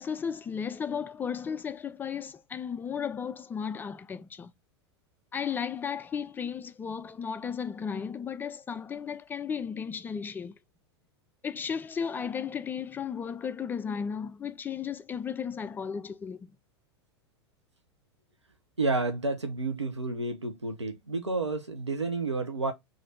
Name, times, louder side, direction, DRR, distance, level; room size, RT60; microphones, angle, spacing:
voice 1, 0.0-4.5 5.3-10.5 11.4-16.6, left 7 dB, 15° left, 0.3 m, -34 dB
voice 2, 18.8-22.7, right 3 dB, 90° right, 0.7 m, -30 dB
3.3 x 2.5 x 4.0 m
figure-of-eight pair, 85°, 14 cm